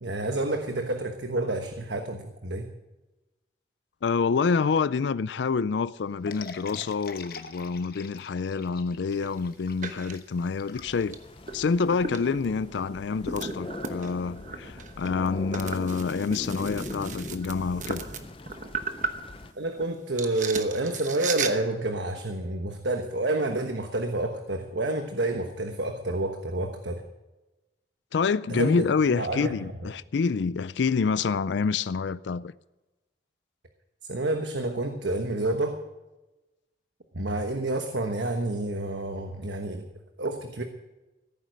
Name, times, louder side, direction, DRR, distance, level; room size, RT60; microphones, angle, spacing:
voice 1, 0.0-2.7 19.6-27.0 28.5-28.9 29.1-29.6 34.1-35.8 37.1-39.9 40.2-40.6, right 2 dB, 85° right, 1.2 m, -29 dB
voice 2, 4.0-11.2 11.5-18.1 28.1-32.5, left 5 dB, 85° left, 0.4 m, -27 dB
sound 1, 6.3-11.6, left 5 dB, 55° left, 1.1 m, -44 dB
sound 2, 9.1-9.4 9.8-10.2 11.0-11.1 11.5-19.8 20.2-21.5, right 5 dB, 45° right, 1.1 m, -36 dB
sound 3, 10.7-19.5, left 1 dB, 30° left, 0.6 m, -41 dB
16.0 x 9.2 x 6.4 m
head